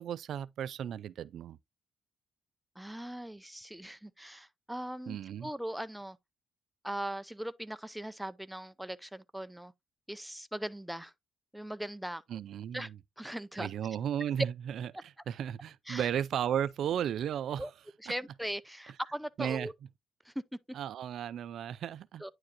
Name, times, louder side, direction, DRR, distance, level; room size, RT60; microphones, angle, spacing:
voice 1, 0.0-1.6 5.1-5.5 12.3-13.0 13.6-17.7 18.1-18.2 19.4-19.7 20.7-22.2, right 9 dB, 70° right, 0.3 m, -35 dB
voice 2, 2.8-6.2 6.8-9.7 10.1-11.1 11.5-12.2 12.7-12.9 13.2-13.7 15.9-16.1 17.6-17.7 18.0-19.7 20.2-20.3 22.2-22.3, right 1 dB, 5° right, 0.5 m, -40 dB
9.6 x 4.7 x 2.9 m
cardioid pair, 90°, 0 cm